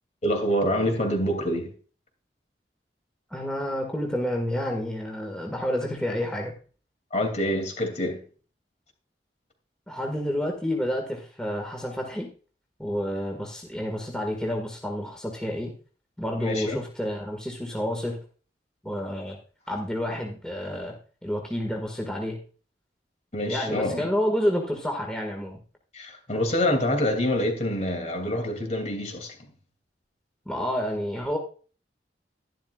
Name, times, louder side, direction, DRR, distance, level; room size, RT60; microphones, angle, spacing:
voice 1, 0.2-1.7 7.1-8.2 16.4-16.8 23.3-24.1 25.9-29.4, left 1 dB, 40° left, 2.8 m, -26 dB
voice 2, 3.3-6.5 9.9-12.3 12.8-15.7 16.2-18.2 18.8-19.4 19.7-20.9 21.2-22.4 23.5-25.6 30.5-31.4, equal, 5° left, 1.8 m, -29 dB
12.0 x 12.0 x 2.4 m
head